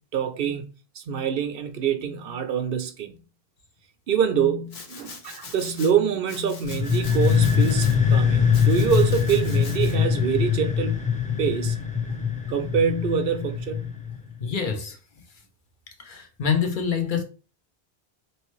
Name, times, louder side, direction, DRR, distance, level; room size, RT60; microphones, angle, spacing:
voice 1, 0.1-0.7 0.9-3.2 4.1-11.0 11.4-11.8 12.5-13.9, right 7 dB, 70° right, 0.8 m, -25 dB
Domestic sounds home sounds, 4.7-5.9 6.3-8.0 8.5-9.9, left 4 dB, 80° left, 1.2 m, -42 dB
sound 1, 6.6-14.3, left 7 dB, 10° left, 0.7 m, -23 dB
voice 2, 14.4-15.0 16.0-17.2, left 6 dB, 55° left, 0.9 m, -26 dB
4.2 x 3.1 x 3.1 m
omnidirectional pair, 1.0 m